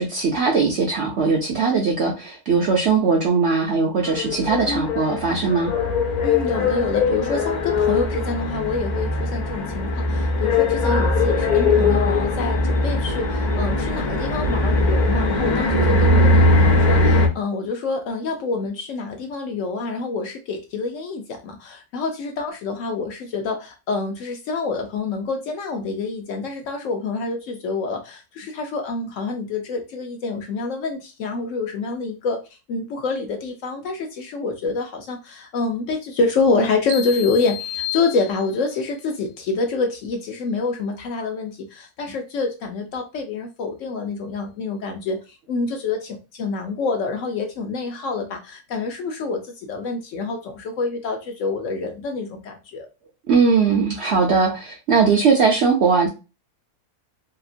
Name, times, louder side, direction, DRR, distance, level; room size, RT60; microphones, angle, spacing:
voice 1, 0.0-5.7 53.3-56.1, right 5 dB, 65° right, 0 dB, 0.7 m, -19 dB
sound 1, 4.1-17.3, left 2 dB, 85° left, 0.4 m, -20 dB
voice 2, 6.2-32.4 32.7-45.2 45.5-52.9, left 4 dB, 70° left, 4 dB, 0.8 m, -27 dB
sound 2, 36.9-38.8, left 8 dB, 90° right, 1.1 m, -31 dB
2.8 x 2.4 x 2.5 m, 0.29 s
omnidirectional pair, 1.6 m